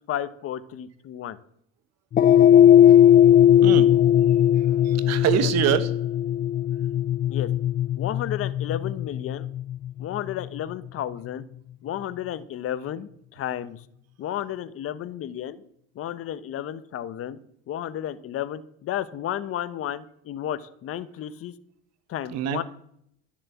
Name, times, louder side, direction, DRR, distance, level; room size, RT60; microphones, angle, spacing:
voice 1, 0.1-1.4 5.4-5.5 7.3-7.5 8.0-9.5 10.0-11.5 11.8-13.8 14.2-15.6 15.9-17.4 17.7-21.5 22.1-22.6, left 11 dB, 50° left, 14 dB, 1.0 m, -32 dB
sound 1, 2.1-10.6, left 10 dB, 30° left, 0.4 m, -18 dB
voice 2, 4.6-5.9 22.3-22.6, right 11 dB, 60° right, 13 dB, 1.3 m, -25 dB
13.0 x 7.4 x 8.3 m, 0.71 s
supercardioid pair, 110°, 29 cm